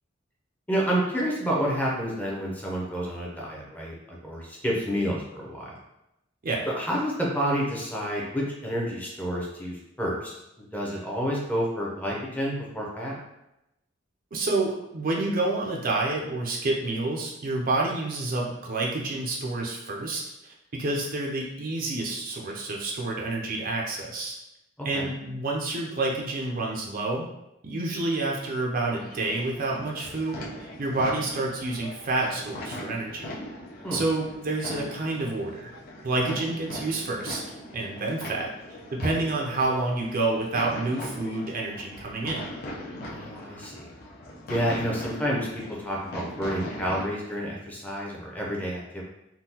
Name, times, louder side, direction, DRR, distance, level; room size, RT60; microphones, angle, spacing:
voice 1, 0.7-5.8 6.7-13.1 24.8-25.0 33.8-34.0 43.0-43.9 44.5-45.5 45.8-49.0, equal, 10° left, -3 dB, 0.6 m, -29 dB
voice 2, 14.3-24.4 24.8-27.3 27.6-33.4 33.9-35.7 36.0-37.4 37.7-42.5, right 2 dB, 45° right, -1 dB, 0.5 m, -29 dB
sound 1, 28.8-47.1, left 1 dB, 50° left, 0.6 m, -40 dB
3.7 x 2.3 x 2.8 m, 0.88 s
head